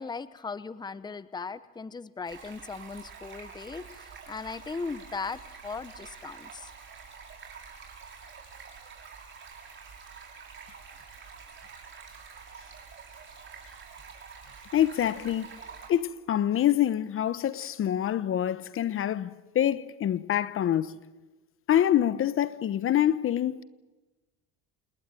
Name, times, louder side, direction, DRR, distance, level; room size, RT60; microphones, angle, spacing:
voice 1, 0.0-6.7, left 4 dB, 15° left, 0.9 m, -38 dB
Stream, 2.3-15.9, right 5 dB, 35° right, 5.9 m, -47 dB
voice 2, 14.7-15.5 15.9-21.0 21.7-23.6, left 11 dB, 40° left, 1.0 m, -26 dB
28.0 x 20.0 x 9.3 m
supercardioid pair, 105°, 32 cm